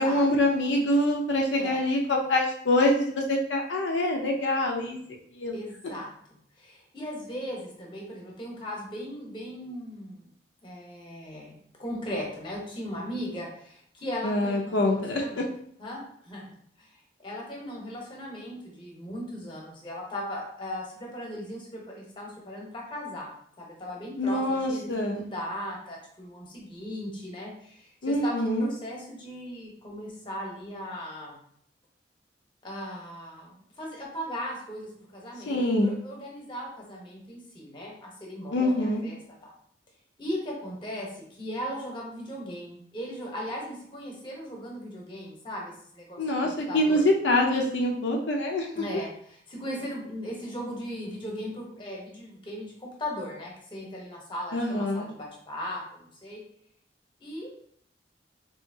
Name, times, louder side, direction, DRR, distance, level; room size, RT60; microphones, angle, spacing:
voice 1, 0.0-5.0 5.4-5.5 14.2-15.4 24.2-25.3 28.0-28.7 35.5-35.9 38.5-39.0 46.2-48.7 54.5-55.1, left 1 dB, 75° left, 1 dB, 0.5 m, -25 dB
voice 2, 5.5-10.2 10.6-15.5 15.8-16.9 17.2-23.3 23.6-31.4 32.6-39.2 39.4-39.5 40.2-47.0 48.7-56.4 57.2-57.5, equal, 25° left, -2 dB, 0.9 m, -38 dB
3.8 x 2.7 x 2.7 m, 0.64 s
head